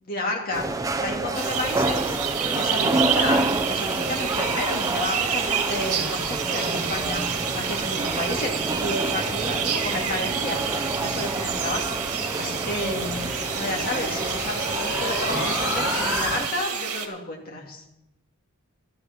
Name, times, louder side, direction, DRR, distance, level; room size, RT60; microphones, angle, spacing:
voice 1, 0.1-2.2 2.5-17.8, left 2 dB, 40° left, 0 dB, 2.5 m, -31 dB
sound 1, 0.5-16.5, right 2 dB, 15° right, 0.5 m, -29 dB
sound 2, 1.3-17.1, right 7 dB, 85° right, 1.8 m, -29 dB
sound 3, 12.5-16.3, left 2 dB, 70° left, 4.6 m, -31 dB
12.5 x 9.9 x 6.1 m, 0.88 s
head